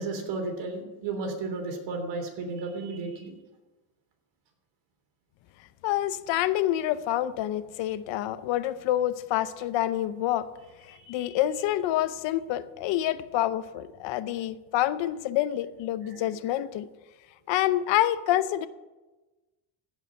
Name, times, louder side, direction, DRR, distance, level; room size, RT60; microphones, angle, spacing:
voice 1, 0.0-3.3 16.1-16.3, right 3 dB, 65° right, 3 dB, 3.3 m, -33 dB
voice 2, 5.8-10.5 10.9-16.9 17.5-18.7, left 13 dB, 70° left, 14 dB, 0.8 m, -27 dB
15.5 x 5.7 x 7.0 m, 1.1 s
cardioid pair, 135°, 46 cm